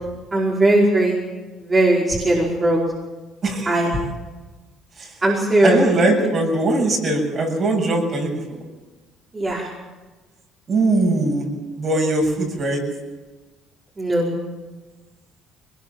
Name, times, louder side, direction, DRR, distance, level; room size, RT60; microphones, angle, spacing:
voice 1, 0.3-1.2 1.6-2.8 3.6-3.9 5.2-5.8 9.3-9.7 14.0-14.3, right 1 dB, 25° right, -4 dB, 5.2 m, -18 dB
voice 2, 3.4-3.7 5.0-5.1 5.6-8.6 10.7-11.5 11.8-12.8, right 2 dB, 45° right, 1 dB, 7.5 m, -20 dB
22.0 x 20.5 x 7.4 m, 1.2 s
cardioid pair, 95°, 0 cm